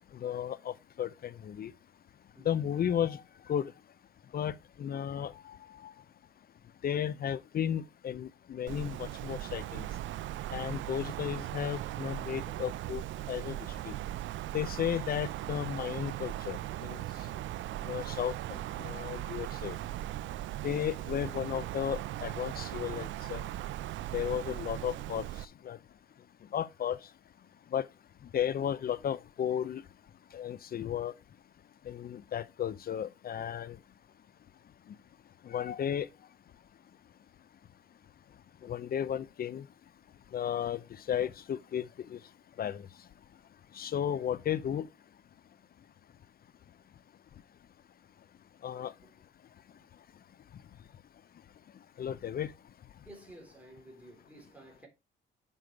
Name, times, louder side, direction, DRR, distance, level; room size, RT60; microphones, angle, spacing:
voice 1, 0.1-1.7 2.4-3.7 4.3-5.6 5.8-5.9 6.8-9.9 10.5-13.0 13.3-13.6 13.8-13.9 14.5-17.0 17.8-19.8 20.6-23.4 24.1-25.3 25.6-25.8 26.5-27.0 27.7-27.9 28.3-29.8 30.3-31.1 31.9-33.8 35.4-36.1 38.6-39.7 40.3-40.8 41.1-42.2 42.6-42.9 43.7-44.9 48.6-48.9 52.0-52.5, left 9 dB, 50° left, 0.6 m, -34 dB
Wind, 8.7-25.4, right 14 dB, 75° right, 0.4 m, -39 dB
voice 2, 53.0-54.9, right 1 dB, 5° right, 3.8 m, -53 dB
6.7 x 5.6 x 4.6 m
cardioid pair, 90°, 20 cm